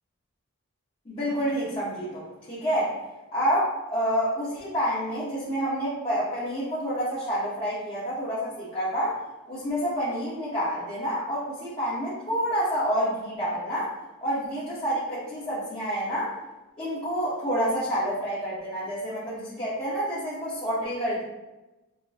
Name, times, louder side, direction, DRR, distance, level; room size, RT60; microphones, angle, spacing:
voice 1, 1.0-3.0 3.3-9.2 9.5-13.9 14.2-16.3 16.8-21.2, equal, 25° left, -11 dB, 1.2 m, -28 dB
6.7 x 2.3 x 2.8 m, 1.1 s
head